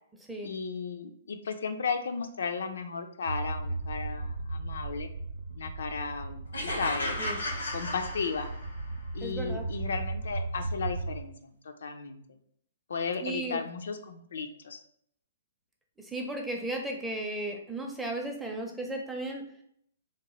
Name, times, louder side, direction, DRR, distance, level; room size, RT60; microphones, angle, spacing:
voice 1, 0.4-5.1 5.5-7.2 7.7-8.5 9.1-12.2 12.9-14.8, left 5 dB, 75° left, 7 dB, 0.3 m, -35 dB
sound 1, 3.3-11.2, right 2 dB, 70° right, 0.4 m, -36 dB
sound 2, 6.5-8.8, left 1 dB, 90° left, 0.8 m, -34 dB
voice 2, 9.2-9.7 13.2-13.6 16.0-19.4, right 1 dB, 5° right, 1 dB, 0.5 m, -35 dB
2.9 x 2.1 x 3.0 m, 0.68 s
hypercardioid pair, 130°, 0 cm